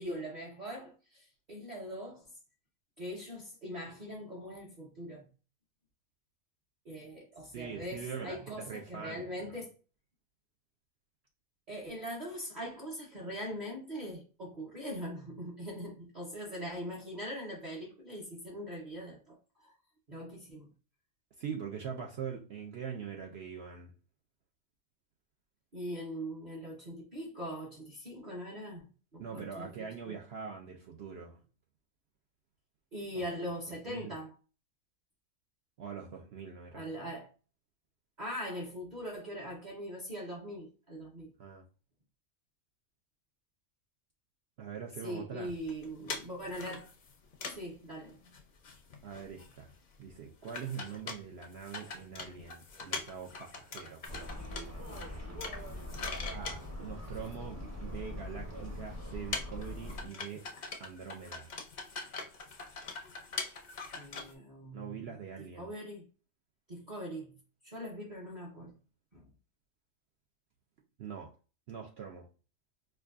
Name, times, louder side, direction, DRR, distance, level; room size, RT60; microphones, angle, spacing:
voice 1, 0.0-2.2 3.0-5.3 6.8-9.7 11.7-19.7 20.1-20.7 25.7-29.7 30.0-30.2 32.9-34.3 36.7-37.3 38.2-41.3 45.0-46.9 47.5-48.2 64.0-65.0 65.6-66.0 66.7-67.3 67.6-68.7 69.1-69.3, equal, 35° right, 1.0 m, -41 dB
voice 2, 7.5-9.5 21.4-23.9 29.2-31.4 33.1-33.2 33.8-34.1 35.8-36.9 41.4-41.6 44.6-45.5 49.0-49.7 50.0-54.0 56.3-60.5 60.8-61.5 64.7-65.7 71.0-71.3 71.7-72.3, right 7 dB, 60° right, 0.7 m, -43 dB
sound 1, 45.4-47.7 48.0-48.1 48.3-48.4 48.6-49.7 50.0-50.1 50.4-57.6 58.4-58.5 58.7-64.3, left 4 dB, 50° left, 0.5 m, -42 dB
sound 2, 54.0-60.1, left 1 dB, 15° right, 0.7 m, -42 dB
4.5 x 2.5 x 2.4 m
omnidirectional pair, 1.4 m